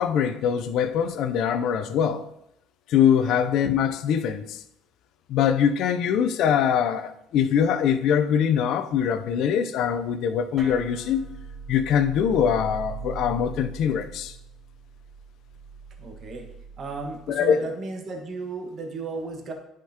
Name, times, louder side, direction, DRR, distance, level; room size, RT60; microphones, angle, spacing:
voice 1, 0.0-2.3 2.9-4.6 5.3-11.2 11.7-14.3 17.3-17.7, left 8 dB, 70° left, 0.6 m, -23 dB
sound 1, 10.6-17.3, right 5 dB, 30° right, 2.8 m, -40 dB
voice 2, 16.0-19.5, right 3 dB, 50° right, 1.5 m, -35 dB
10.5 x 5.1 x 2.9 m
supercardioid pair, 75°, 0 cm